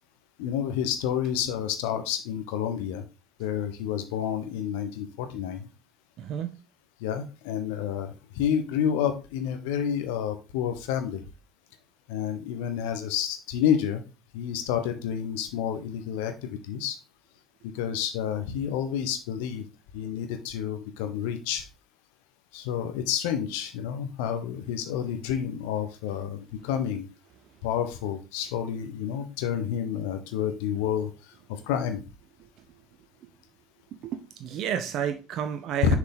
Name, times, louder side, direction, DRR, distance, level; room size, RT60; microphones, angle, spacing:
voice 1, 0.4-3.0 3.4-5.7 7.0-11.2 12.1-14.0 14.3-17.0 17.7-19.6 19.9-21.6 22.5-27.1 27.6-31.1 31.5-32.0 35.8-36.0, left 9 dB, 75° left, 1.0 m, -29 dB
voice 2, 6.2-6.6 34.0-36.0, right 9 dB, 60° right, 0.6 m, -31 dB
6.8 x 4.8 x 3.7 m
hypercardioid pair, 60°, 0 cm